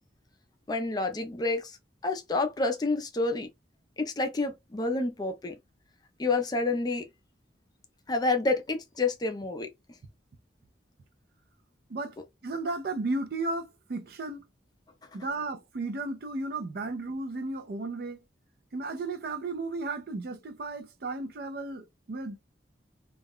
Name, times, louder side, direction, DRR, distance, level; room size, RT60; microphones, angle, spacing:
voice 1, 0.7-1.8 2.0-3.5 4.0-5.5 6.2-7.0 8.1-9.7, left 3 dB, 20° left, 0.4 m, -28 dB
voice 2, 12.4-14.5 15.1-18.2 18.7-22.4, right 2 dB, 60° right, 0.4 m, -34 dB
2.3 x 2.1 x 3.4 m
head